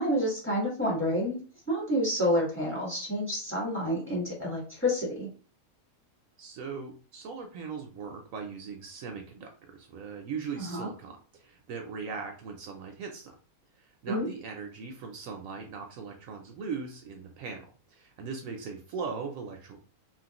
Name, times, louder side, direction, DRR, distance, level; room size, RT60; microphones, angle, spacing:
voice 1, 0.0-1.4 1.7-5.3 10.6-10.9 14.1-14.3, equal, 10° left, -4 dB, 1.2 m, -29 dB
voice 2, 6.4-13.3 13.8-19.8, right 5 dB, 70° right, 3 dB, 0.9 m, -39 dB
3.0 x 2.5 x 2.9 m, 0.38 s
omnidirectional pair, 1.5 m